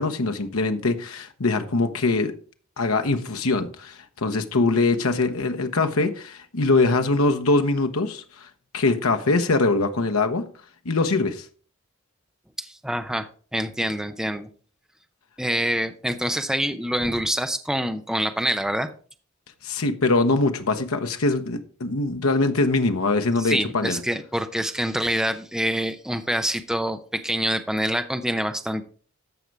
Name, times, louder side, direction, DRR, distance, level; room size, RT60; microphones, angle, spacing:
voice 1, 0.0-2.3 2.8-8.5 8.7-10.5 10.8-11.5 19.6-24.0, left 3 dB, 80° left, 1.0 m, -23 dB
voice 2, 12.6-14.5 15.4-18.9 23.4-28.8, right 1 dB, 5° right, 0.6 m, -26 dB
14.0 x 5.3 x 4.7 m
head